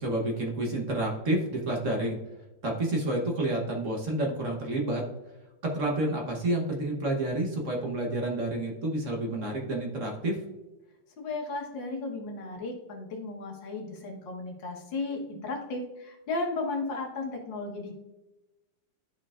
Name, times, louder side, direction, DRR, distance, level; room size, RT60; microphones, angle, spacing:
voice 1, 0.0-2.2 2.6-5.0 5.6-10.4, right 1 dB, 45° right, 0 dB, 1.3 m, -29 dB
voice 2, 11.2-17.9, left 3 dB, 80° left, 1 dB, 2.0 m, -35 dB
12.0 x 4.5 x 2.4 m, 1.0 s
omnidirectional pair, 2.0 m